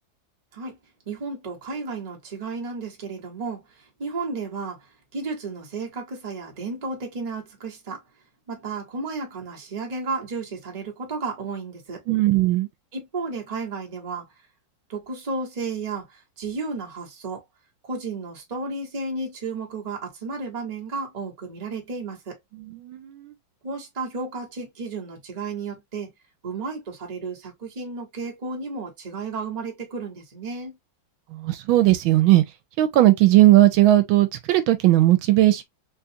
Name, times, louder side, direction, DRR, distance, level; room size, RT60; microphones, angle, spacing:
voice 1, 1.1-4.8 5.1-8.0 8.5-12.0 12.9-14.3 14.9-17.4 17.8-22.4 23.6-26.1 26.4-30.8, right 3 dB, 25° right, 0.9 m, -33 dB
voice 2, 12.1-12.7 22.6-23.3 31.3-32.4 32.8-35.6, right 15 dB, 80° right, 1.4 m, -17 dB
3.9 x 2.3 x 2.8 m
omnidirectional pair, 2.2 m